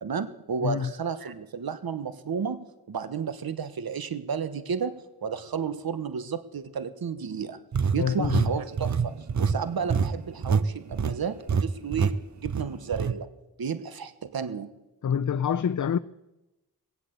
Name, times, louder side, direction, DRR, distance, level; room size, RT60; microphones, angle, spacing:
voice 1, 0.0-7.6 7.9-13.3 13.6-14.7, right 6 dB, 65° right, 1.2 m, -32 dB
sound 1, 7.7-10.7 10.9-11.2 11.5-11.6 11.9-12.1 12.5-13.1, right 6 dB, 45° right, 0.8 m, -25 dB
voice 2, 8.0-8.5 15.0-16.0, left 7 dB, 50° left, 0.6 m, -26 dB
18.5 x 8.2 x 8.1 m
cardioid pair, 45°, 39 cm